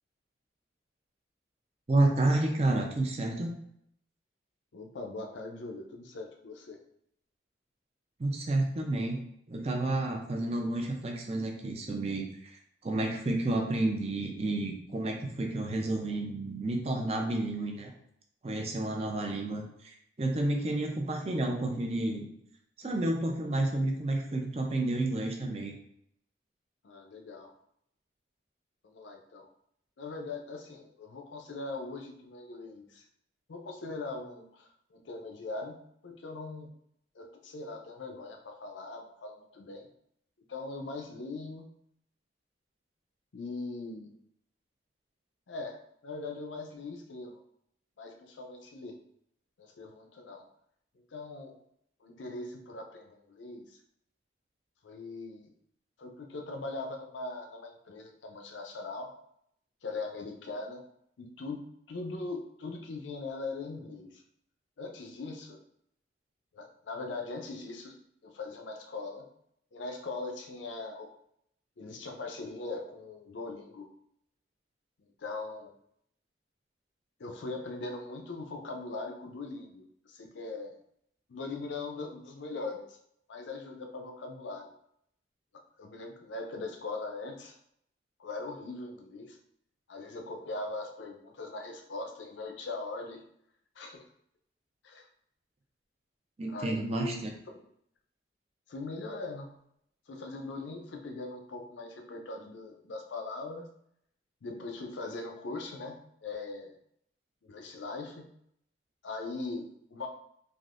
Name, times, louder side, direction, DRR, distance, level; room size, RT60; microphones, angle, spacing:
voice 1, 1.9-3.5 8.2-9.2 9.5-12.5 12.8-17.9 18.4-22.3 22.8-25.7 96.4-97.3, right 2 dB, 35° right, 2 dB, 0.5 m, -30 dB
voice 2, 4.7-6.8 26.8-27.5 28.8-29.5 30.0-33.0 33.5-35.8 36.0-36.7 37.1-39.9 40.5-41.7 43.3-44.1 45.5-47.4 48.0-49.0 49.6-50.4 50.9-51.6 52.0-53.8 54.8-55.5 56.0-59.1 59.8-60.8 61.2-64.2 64.8-65.6 66.5-68.0 68.2-69.3 69.7-71.1 71.8-73.9 75.0-75.7 77.2-80.7 81.3-83.0 83.3-84.7 85.8-87.6 88.2-89.4 89.9-93.2 93.8-94.1 94.8-95.1 96.5-97.2 98.7-99.5 100.1-103.6 104.4-106.7 107.4-108.3 109.0-110.1, left 3 dB, 80° left, 4 dB, 0.5 m, -40 dB
3.4 x 2.5 x 2.5 m, 0.73 s
head